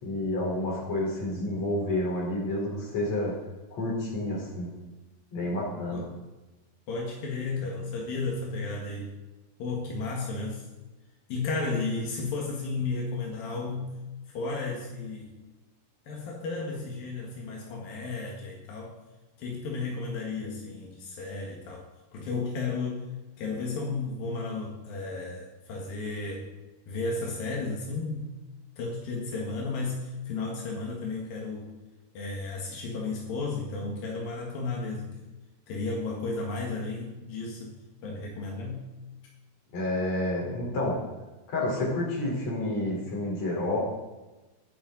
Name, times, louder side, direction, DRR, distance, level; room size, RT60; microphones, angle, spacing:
voice 1, 0.0-3.3 3.7-4.7 5.3-6.0 39.7-41.0 41.5-43.8, left 1 dB, 50° left, -2 dB, 5.4 m, -29 dB
voice 2, 6.9-9.1 9.6-10.7 11.3-14.0 14.3-15.4 16.1-19.0 19.4-21.8 22.1-23.0 23.4-26.5 26.9-28.3 28.8-31.7 32.2-35.2 35.7-37.8 38.0-38.9, left 3 dB, 85° left, -1 dB, 3.6 m, -33 dB
21.0 x 10.5 x 4.0 m, 1.1 s
omnidirectional pair, 3.9 m